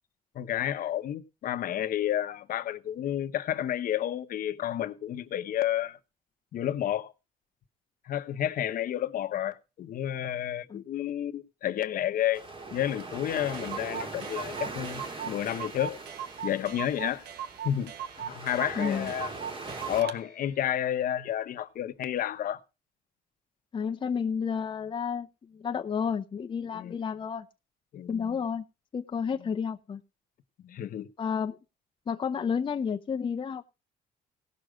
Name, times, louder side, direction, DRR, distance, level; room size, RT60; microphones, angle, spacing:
voice 1, 0.3-6.0 6.5-7.1 8.0-12.4 12.7-16.0 16.4-17.2 17.6-17.9 18.2-19.3 19.9-22.6 26.7-27.0 27.9-28.4 30.6-31.1, left 11 dB, 55° left, 1.0 m, -31 dB
sound 1, 12.3-20.0, right 3 dB, 30° right, 2.2 m, -41 dB
Clock, 13.0-13.1 13.3-13.4 13.5-20.2, right 9 dB, 75° right, 1.3 m, -39 dB
voice 2, 18.8-19.1 23.7-25.3 25.5-27.5 28.1-28.6 28.9-30.0 31.2-31.6 32.1-33.6, left 6 dB, 30° left, 0.7 m, -31 dB
17.0 x 6.5 x 5.0 m
cardioid pair, 110°, 17 cm